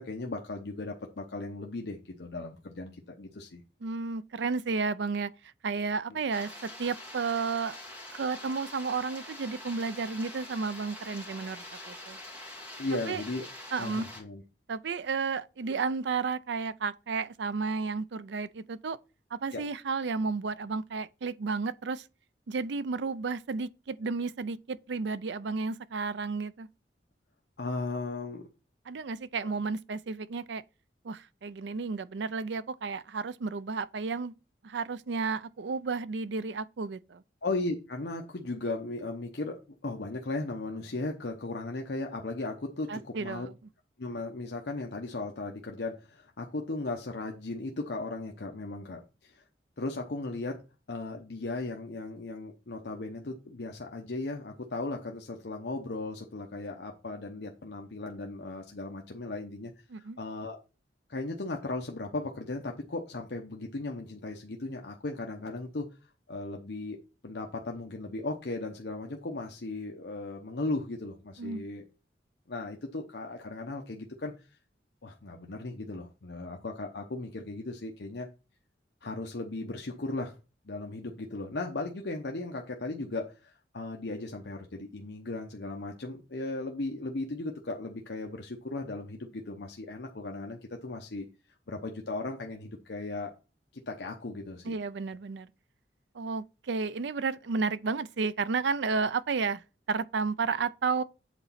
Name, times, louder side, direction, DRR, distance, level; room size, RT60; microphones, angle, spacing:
voice 1, 0.0-3.6 12.8-13.5 13.8-14.4 19.5-19.6 27.6-28.5 37.4-43.5 44.0-49.4 49.8-50.6 50.9-59.7 60.0-60.6 61.1-65.9 66.3-67.0 67.2-71.8 72.5-74.5 75.0-78.3 79.0-80.3 80.6-91.3 91.7-93.3 93.7-94.7, left 2 dB, 65° left, 0.8 m, -36 dB
voice 2, 3.8-5.3 5.6-6.5 6.8-7.8 8.1-12.2 12.9-13.2 13.7-14.1 14.7-19.0 19.3-22.0 22.5-26.7 28.9-30.6 31.0-34.3 34.6-37.2 42.9-43.5 59.9-60.2 71.4-71.6 94.6-95.5 96.1-99.6 99.9-101.0, right 4 dB, 75° right, 0.5 m, -32 dB
Loud rain on leaves ground thunders, 6.3-14.2, left 1 dB, 10° right, 2.4 m, -45 dB
8.1 x 4.0 x 5.7 m
head